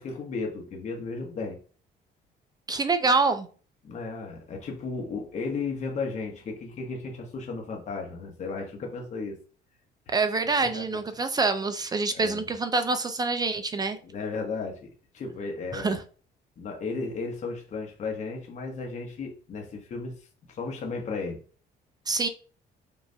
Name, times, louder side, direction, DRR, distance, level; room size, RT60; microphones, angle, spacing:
voice 1, 0.0-1.6 3.8-9.4 10.6-10.8 12.1-12.4 14.0-16.0 16.6-20.1 20.5-21.4, left 4 dB, 45° left, 1.0 m, -34 dB
voice 2, 2.7-3.5 10.1-14.0 15.7-16.0 22.1-22.3, right 3 dB, 25° right, 0.4 m, -26 dB
5.3 x 2.5 x 2.7 m
cardioid pair, 110°, 17 cm